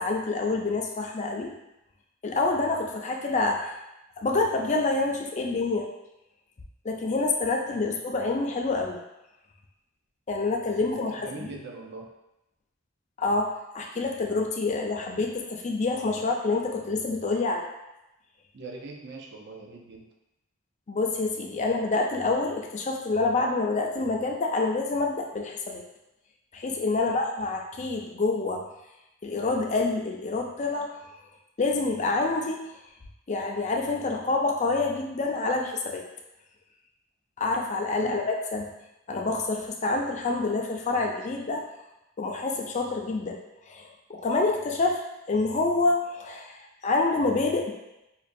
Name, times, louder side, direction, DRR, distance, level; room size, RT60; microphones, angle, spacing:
voice 1, 0.0-1.5 2.2-3.7 4.2-5.9 6.8-9.0 10.3-11.5 13.2-13.5 13.7-17.6 20.9-25.8 26.5-28.6 29.2-30.9 31.6-32.7 33.3-36.0 37.4-38.7 39.1-41.6 42.2-43.4 43.7-45.0 45.3-47.7, left 3 dB, 35° left, 1 dB, 0.4 m, -27 dB
voice 2, 10.8-12.1 16.2-16.3 18.5-20.1 26.9-27.2 38.0-38.2, right 3 dB, 55° right, 0 dB, 0.6 m, -42 dB
5.2 x 2.3 x 2.6 m, 0.92 s
head